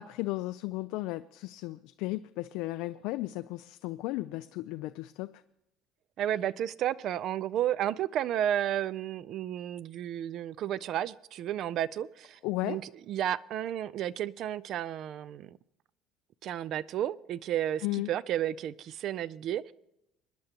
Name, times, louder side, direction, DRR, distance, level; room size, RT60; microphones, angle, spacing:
voice 1, 0.0-5.3 12.4-12.8 17.8-18.1, left 19 dB, 70° left, 0.4 m, -35 dB
voice 2, 6.2-15.6 16.4-19.7, right 11 dB, 50° right, 0.4 m, -32 dB
25.5 x 10.5 x 2.9 m
cardioid pair, 145°, 0 cm